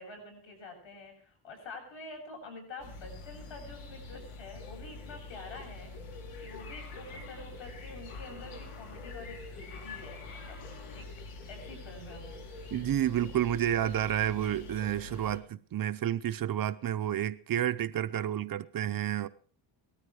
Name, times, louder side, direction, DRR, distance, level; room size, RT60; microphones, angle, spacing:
voice 1, 0.0-10.6 10.9-11.1 11.5-12.4, left 2 dB, 65° left, 7.7 m, -47 dB
sound 1, 2.8-15.4, left 3 dB, 85° left, 3.3 m, -45 dB
voice 2, 12.7-19.3, right 11 dB, 45° right, 0.7 m, -30 dB
19.0 x 13.0 x 4.9 m
cardioid pair, 175°, 50 cm